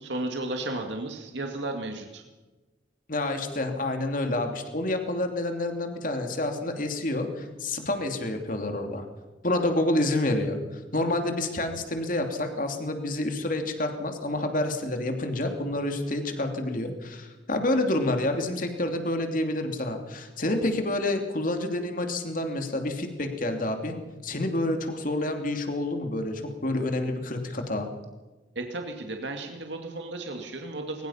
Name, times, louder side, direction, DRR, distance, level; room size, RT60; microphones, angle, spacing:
voice 1, 0.0-2.2 28.6-31.1, right 2 dB, 75° right, 3 dB, 2.2 m, -34 dB
voice 2, 3.1-9.0 9.4-24.0 24.2-27.9, left 1 dB, 45° left, 5 dB, 2.9 m, -28 dB
22.0 x 20.5 x 5.8 m, 1.2 s
head